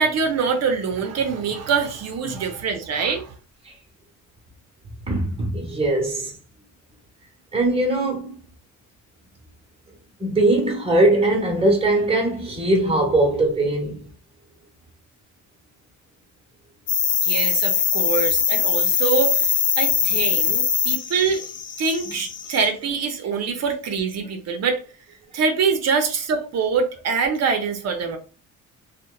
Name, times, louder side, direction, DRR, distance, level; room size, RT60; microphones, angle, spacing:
voice 1, 0.0-3.3 17.2-21.4 21.8-24.8 25.3-28.2, right 5 dB, 60° right, 0.6 m, -24 dB
voice 2, 5.1-6.3 7.5-8.4 10.2-14.1, right 2 dB, 20° right, 1.0 m, -20 dB
sound 1, 16.9-22.6, left 7 dB, 40° left, 0.5 m, -22 dB
2.8 x 2.1 x 2.2 m
cardioid pair, 90°, 30 cm